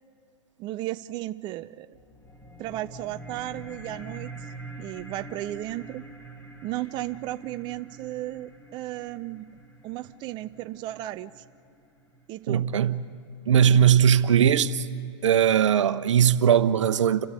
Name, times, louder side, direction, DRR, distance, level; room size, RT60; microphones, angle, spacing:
voice 1, 0.6-2.0 2.6-4.5 4.8-6.0 6.6-11.4 12.3-12.6, right 15 dB, 30° right, 0.5 m, -35 dB
sound 1, 1.9-12.9, right 2 dB, 10° left, 1.5 m, -45 dB
voice 2, 12.5-13.0 13.5-14.9 15.2-17.3, right 8 dB, 75° right, 0.9 m, -20 dB
30.0 x 12.5 x 8.3 m
hypercardioid pair, 125°, 16 cm